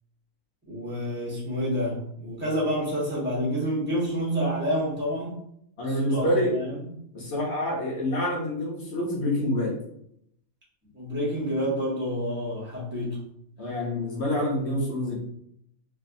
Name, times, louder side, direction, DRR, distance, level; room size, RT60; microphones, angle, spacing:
voice 1, 0.7-5.4 5.9-6.7 10.9-13.2, equal, 10° right, -7 dB, 1.0 m, -28 dB
voice 2, 5.8-6.5 7.1-9.7 13.6-15.2, left 1 dB, 55° left, -3 dB, 0.9 m, -27 dB
3.2 x 2.7 x 2.5 m, 0.72 s
omnidirectional pair, 1.6 m